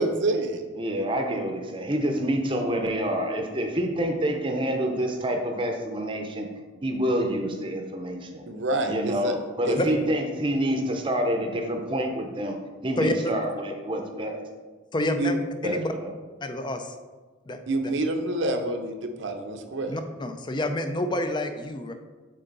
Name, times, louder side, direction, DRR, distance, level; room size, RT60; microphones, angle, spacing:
voice 1, 0.0-0.6 8.5-9.3 9.6-9.9 15.2-15.4 17.7-20.0, right 2 dB, 65° right, 5 dB, 0.7 m, -27 dB
voice 2, 0.8-6.5 6.8-8.4 8.9-12.6 12.8-14.4 15.6-16.1, equal, 25° right, 3 dB, 0.7 m, -27 dB
voice 3, 13.0-13.3 14.9-15.4 15.6-15.9 16.4-16.9 17.5-17.9 19.9-21.9, left 1 dB, 25° left, 7 dB, 0.4 m, -28 dB
7.7 x 3.8 x 4.0 m, 1.3 s
head